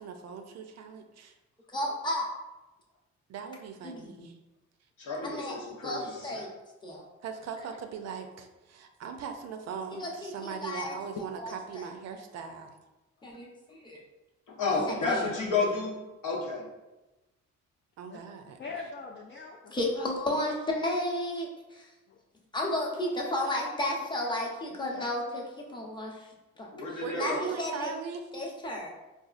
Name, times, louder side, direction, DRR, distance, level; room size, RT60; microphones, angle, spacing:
voice 1, 0.0-1.4 3.3-4.4 7.2-12.7 18.0-18.6 27.0-28.3, right 6 dB, 60° right, 6 dB, 0.5 m, -40 dB
voice 2, 1.7-2.3 3.8-4.3 5.2-6.5 6.8-7.0 9.9-10.9 11.4-11.9 13.2-14.0 14.7-15.3 19.7-21.9 22.5-25.4 25.7-26.3 26.6-27.9 28.3-28.9, left 1 dB, 15° left, -2 dB, 0.7 m, -33 dB
voice 3, 5.0-6.4 14.5-16.7 26.7-27.5, left 3 dB, 80° left, -2 dB, 0.9 m, -31 dB
voice 4, 18.6-20.1 22.1-22.2 24.2-24.3 24.9-25.0 25.7-25.8, left 4 dB, 40° left, -1 dB, 0.4 m, -43 dB
4.1 x 2.4 x 2.4 m, 1.1 s
cardioid pair, 90°, 30 cm